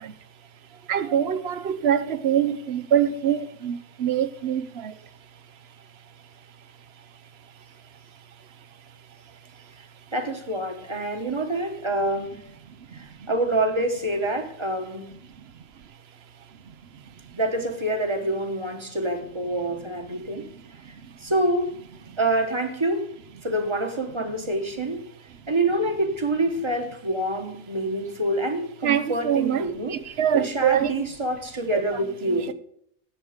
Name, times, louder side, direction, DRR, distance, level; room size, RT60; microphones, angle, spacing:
voice 1, 0.9-4.9 28.8-30.9 32.3-32.4, right 9 dB, 60° right, 0.8 m, -24 dB
voice 2, 10.1-12.4 12.9-15.2 17.4-20.5 20.9-21.9 22.2-23.1 23.4-25.0 25.5-30.0 30.3-32.5, right 1 dB, 25° right, 1.2 m, -26 dB
16.0 x 6.4 x 5.0 m
omnidirectional pair, 1.4 m